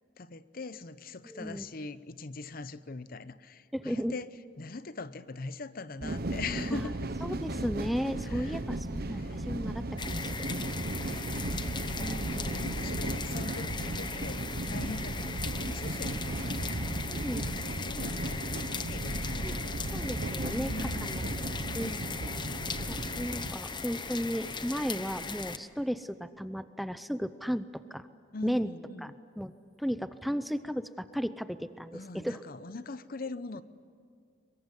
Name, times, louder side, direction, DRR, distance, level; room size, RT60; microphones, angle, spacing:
voice 1, 0.2-4.3 4.6-7.0 8.2-8.6 9.1-9.4 11.0-17.0 17.5-19.8 20.5-21.4 21.8-22.7 28.3-29.1 31.9-33.6, left 3 dB, 55° left, 14 dB, 0.8 m, -42 dB
voice 2, 1.2-1.7 3.7-4.1 6.0-6.1 6.7-6.8 7.2-10.5 11.9-12.2 17.1-17.5 19.4-19.6 19.9-21.2 21.6-21.9 22.9-28.1 28.4-28.7 29.0-29.1 29.4-29.5 29.8-32.4, equal, ahead, 12 dB, 0.6 m, -35 dB
sound 1, 6.0-23.5, right 2 dB, 55° right, 1.1 m, -35 dB
sound 2, 10.0-25.6, left 4 dB, 25° left, 0.9 m, -38 dB
23.0 x 22.5 x 9.9 m, 2.3 s
head